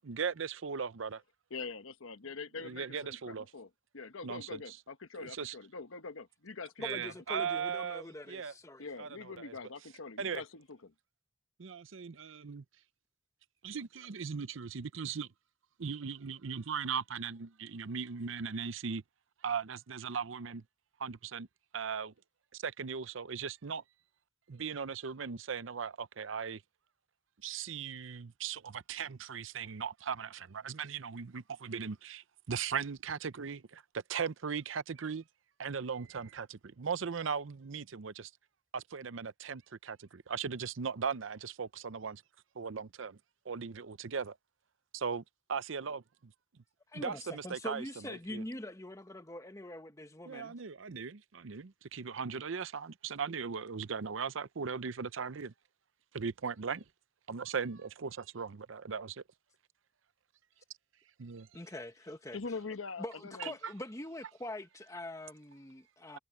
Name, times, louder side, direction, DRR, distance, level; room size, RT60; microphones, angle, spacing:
voice 1, 0.0-1.2 2.6-3.4 4.2-4.8 5.2-5.5 6.8-8.5 9.0-9.6 10.2-10.4 11.6-12.6 13.6-15.3 15.8-19.0 19.4-20.6 21.0-21.5 21.7-22.1 22.5-23.8 24.5-26.6 27.4-35.2 35.6-38.3 38.7-42.2 42.6-43.2 43.4-44.4 44.9-45.2 45.5-46.3 46.9-48.4 50.3-55.5 56.1-56.8 57.3-59.2 61.2-61.5 63.4-63.7, right 6 dB, 75° right, 0.6 m, -38 dB
voice 2, 1.5-6.8 7.3-7.5 8.8-10.9 62.3-63.5, left 4 dB, 85° left, 1.1 m, -44 dB
voice 3, 6.8-8.9 46.9-50.6 61.5-62.4 63.0-66.2, left 1 dB, 15° left, 1.2 m, -43 dB
head